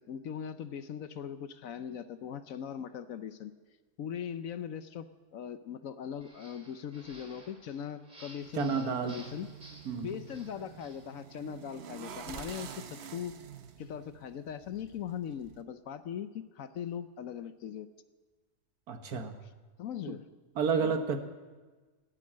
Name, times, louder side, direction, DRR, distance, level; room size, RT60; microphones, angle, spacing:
voice 1, 0.0-3.5 4.0-9.5 9.9-13.3 13.8-17.9 19.8-20.2 20.8-21.0, left 8 dB, 65° left, 12 dB, 1.0 m, -40 dB
sound 1, 6.2-11.1, right 1 dB, 25° right, 2.6 m, -55 dB
sound 2, 8.4-15.6, right 8 dB, 55° right, 0.8 m, -48 dB
voice 2, 8.5-9.2 9.8-10.2 18.9-19.4 20.1-20.2 20.5-21.2, right 5 dB, 70° right, 7 dB, 1.7 m, -30 dB
18.0 x 10.0 x 7.5 m, 1.3 s
omnidirectional pair, 1.7 m